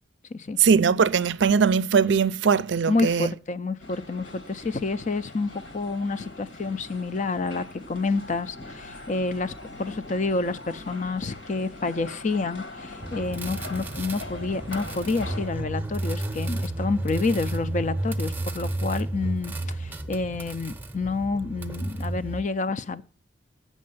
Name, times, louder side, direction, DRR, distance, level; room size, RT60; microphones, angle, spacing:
voice 1, 0.6-3.3, right 6 dB, 70° right, 0.4 m, -20 dB
voice 2, 2.9-23.0, left 3 dB, 40° left, 0.5 m, -29 dB
sound 1, 3.8-15.5, left 2 dB, 70° left, 1.8 m, -42 dB
sound 2, 13.0-22.4, right 1 dB, 10° right, 0.7 m, -32 dB
8.6 x 6.4 x 7.7 m
head